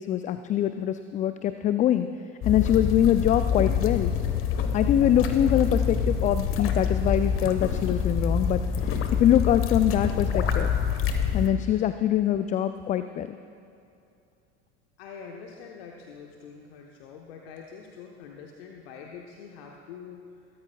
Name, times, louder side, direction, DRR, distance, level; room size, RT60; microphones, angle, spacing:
voice 1, 0.0-2.1 2.5-4.1 4.7-10.7 11.3-13.4, left 11 dB, 25° left, 10 dB, 0.4 m, -24 dB
sound 1, 2.4-11.5, left 6 dB, 40° left, 1.2 m, -26 dB
voice 2, 15.0-20.3, left 6 dB, 60° left, 1 dB, 1.2 m, -44 dB
22.5 x 13.0 x 2.3 m, 2.6 s
figure-of-eight pair, 70°, 34 cm